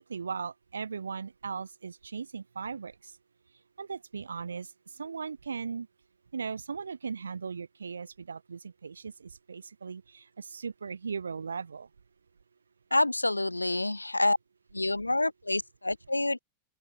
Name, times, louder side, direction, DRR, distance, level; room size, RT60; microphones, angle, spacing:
voice 1, 0.0-3.1 3.8-5.9 6.3-11.9, right 5 dB, 75° right, 3.4 m, -38 dB
voice 2, 12.9-14.4 14.7-16.4, left 2 dB, 85° left, 2.7 m, -27 dB
figure-of-eight pair, 90°, 0 cm